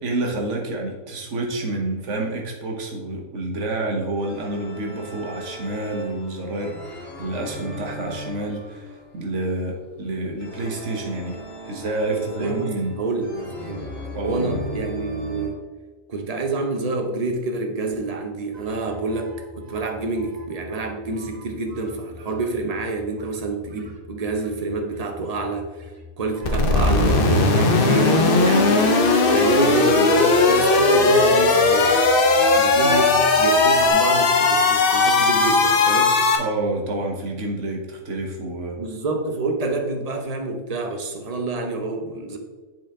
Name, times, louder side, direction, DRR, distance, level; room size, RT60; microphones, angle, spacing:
voice 1, 0.0-11.4 11.6-13.0 14.1-14.6 36.4-38.8, right 2 dB, 65° right, 0 dB, 1.5 m, -28 dB
sound 1, 4.2-15.5, left 1 dB, 85° left, 2.4 m, -38 dB
voice 2, 12.1-13.8 14.2-15.6 16.1-25.7 26.2-28.8 29.1-32.0 32.5-36.2 38.8-42.4, right 3 dB, 35° right, 4 dB, 0.8 m, -27 dB
sound 2, 18.5-33.9, right 1 dB, 90° right, 1.4 m, -39 dB
sound 3, 26.4-36.4, left 3 dB, 50° left, 0.9 m, -17 dB
7.7 x 4.8 x 3.6 m, 1.3 s
omnidirectional pair, 1.4 m